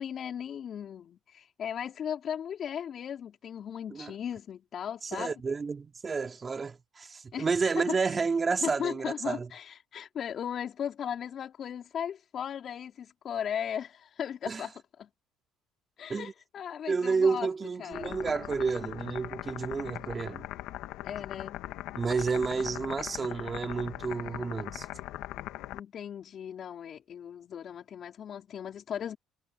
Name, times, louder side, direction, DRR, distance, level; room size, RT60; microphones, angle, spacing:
voice 1, 0.0-5.3 7.3-7.5 7.8-8.2 8.6-14.7 15.0-15.1 16.0-17.5 17.8-18.2 21.0-21.6 25.7-29.2, left 8 dB, 50° left, 4.5 m, -37 dB
voice 2, 5.0-9.5 14.5-14.7 16.1-16.3 16.9-20.5 21.9-24.9, right 4 dB, 30° right, 2.7 m, -30 dB
sound 1, 17.9-25.8, left 15 dB, 75° left, 1.7 m, -40 dB
supercardioid pair, 95°, 0 cm